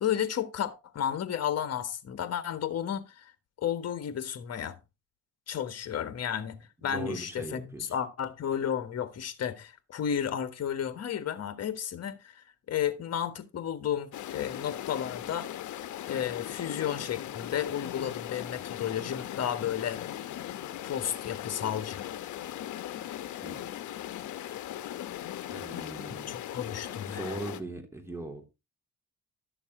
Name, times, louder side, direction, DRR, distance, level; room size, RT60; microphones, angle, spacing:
voice 1, 0.0-3.3 3.6-4.8 5.5-15.5 16.1-20.0 20.8-22.1 26.1-27.4, left 9 dB, 55° left, 1.6 m, -33 dB
voice 2, 6.8-7.9 23.4-23.8 25.5-26.4 26.6-28.5, right 2 dB, 10° right, 3.3 m, -40 dB
sound 1, 14.1-27.6, left 12 dB, 75° left, 0.9 m, -39 dB
12.0 x 7.0 x 3.8 m
cardioid pair, 90°, 30 cm